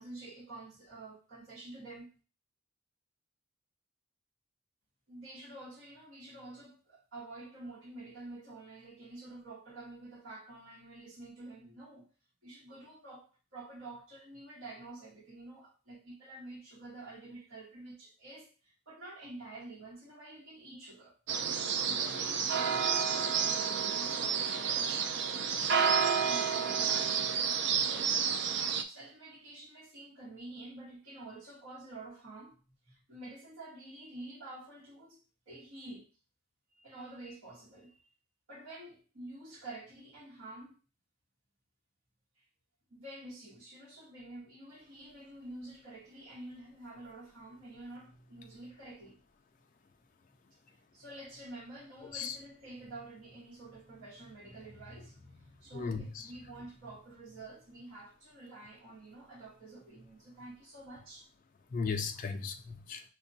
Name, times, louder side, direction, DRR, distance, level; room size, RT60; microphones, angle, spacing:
voice 1, 0.0-2.1 5.1-12.1 12.4-21.2 21.8-25.1 25.5-27.2 27.7-28.5 28.9-32.6 32.9-35.2 35.5-36.1 36.7-38.1 38.5-40.7 42.4-42.5 42.9-49.2 50.7-61.3, right 2 dB, 90° right, 1.3 m, -49 dB
sound 1, 21.3-28.8, right 6 dB, 60° right, 0.4 m, -30 dB
voice 2, 55.7-56.2 61.7-63.0, left 5 dB, 40° left, 0.3 m, -36 dB
5.7 x 2.2 x 2.7 m
head